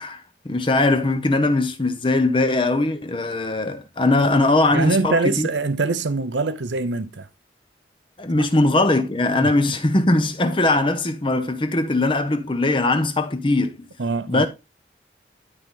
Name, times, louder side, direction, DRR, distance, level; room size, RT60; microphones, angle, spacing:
voice 1, 0.0-5.5 8.2-13.8 14.3-14.5, left 2 dB, 30° left, 0.8 m, -20 dB
voice 2, 4.7-7.3 8.3-8.5 9.4-9.5 14.0-14.5, right 3 dB, 75° right, 0.7 m, -23 dB
12.0 x 4.1 x 3.7 m
head